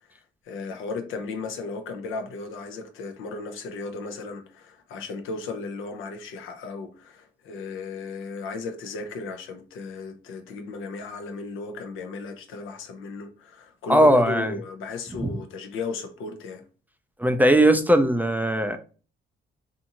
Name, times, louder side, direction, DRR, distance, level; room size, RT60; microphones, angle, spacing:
voice 1, 0.4-16.6, left 4 dB, 85° left, 0.6 m, -35 dB
voice 2, 13.9-14.5 15.2-15.4 17.2-18.8, right 1 dB, 10° right, 0.3 m, -19 dB
2.6 x 2.5 x 2.8 m
cardioid pair, 90°, 20 cm